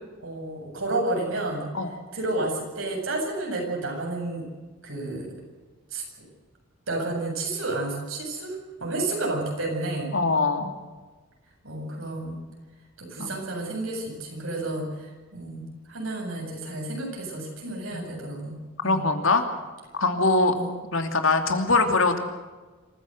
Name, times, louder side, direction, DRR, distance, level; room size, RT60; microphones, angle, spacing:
voice 1, 0.2-1.7 2.1-4.5 4.8-5.3 5.9-6.0 6.9-10.2 11.6-12.4 13.0-19.0 20.6-20.7, right 2 dB, 75° right, 0 dB, 7.9 m, -31 dB
voice 2, 10.1-10.7 13.2-13.3 17.9-18.0 18.8-19.4 19.9-20.5 20.9-22.2, left 3 dB, 75° left, 6 dB, 2.7 m, -22 dB
26.5 x 15.5 x 8.0 m, 1.3 s
head